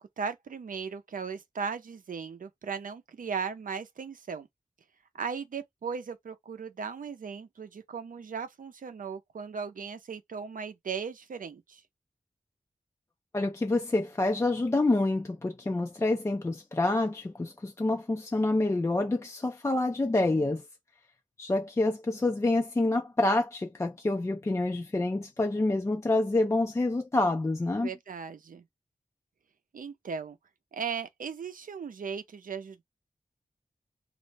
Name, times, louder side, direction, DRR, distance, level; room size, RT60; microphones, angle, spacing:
voice 1, 0.0-4.5 5.2-11.8 27.8-28.6 29.7-30.4 30.7-32.8, right 6 dB, 85° right, 0.5 m, -37 dB
voice 2, 13.3-20.6 21.4-27.9, left 2 dB, 20° left, 0.3 m, -27 dB
2.5 x 2.0 x 3.2 m
wide cardioid pair, 90°, 14 cm